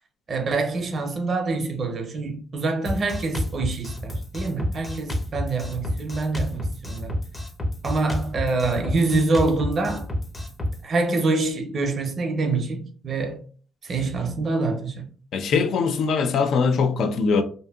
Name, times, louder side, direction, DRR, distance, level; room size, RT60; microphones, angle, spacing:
voice 1, 0.3-7.2 7.8-10.1 10.8-13.4 13.8-15.1, right 3 dB, 50° right, 0.6 m, -25 dB
Drum kit, 2.8-10.8, left 1 dB, 25° left, 0.6 m, -30 dB
voice 2, 15.3-17.4, left 5 dB, 70° left, 0.3 m, -21 dB
2.6 x 2.5 x 2.3 m
cardioid pair, 90°, 0 cm